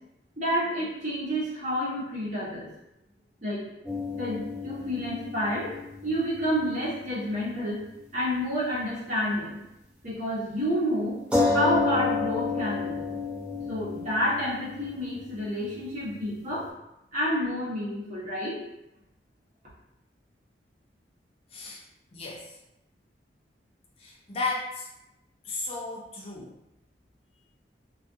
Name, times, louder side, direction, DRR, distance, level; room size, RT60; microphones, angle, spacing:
voice 1, 0.4-2.7 3.4-3.6 4.1-5.7 6.0-7.8 8.1-9.6 10.0-11.2 11.5-13.0 13.7-16.7 17.1-18.6, equal, 45° right, -8 dB, 1.0 m, -29 dB
sound 1, 3.8-7.7 8.0-8.1 11.3-16.5, left 3 dB, 5° right, 0.7 m, -31 dB
voice 2, 21.5-21.8 22.1-22.6 24.0-24.9 25.4-26.6, left 3 dB, 35° left, -4 dB, 0.5 m, -34 dB
2.4 x 2.4 x 2.6 m, 0.90 s
head